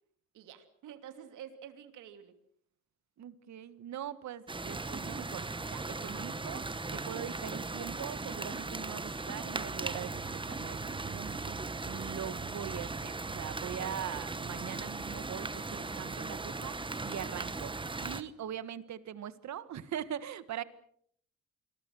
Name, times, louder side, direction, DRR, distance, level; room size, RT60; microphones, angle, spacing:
voice 1, 0.3-2.3, right 9 dB, 85° right, 8 dB, 3.0 m, -49 dB
voice 2, 3.2-20.6, right 10 dB, 65° right, 14 dB, 1.7 m, -42 dB
sound 1, 4.5-18.2, right 3 dB, 15° right, 1.3 m, -38 dB
28.0 x 22.5 x 6.4 m, 0.65 s
cardioid pair, 90°, 30 cm